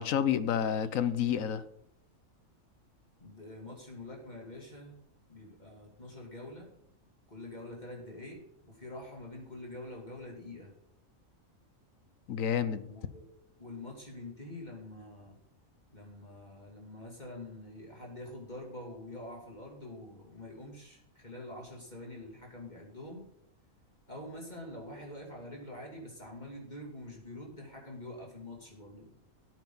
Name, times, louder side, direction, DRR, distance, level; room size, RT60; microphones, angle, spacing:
voice 1, 0.0-1.6 12.3-12.9, left 9 dB, 75° left, 1.2 m, -29 dB
voice 2, 3.2-4.9 5.3-6.7 7.3-10.7 12.8-15.4 15.9-23.3 24.1-29.1, left 1 dB, 30° left, 3.0 m, -46 dB
16.5 x 9.2 x 4.0 m
omnidirectional pair, 1.4 m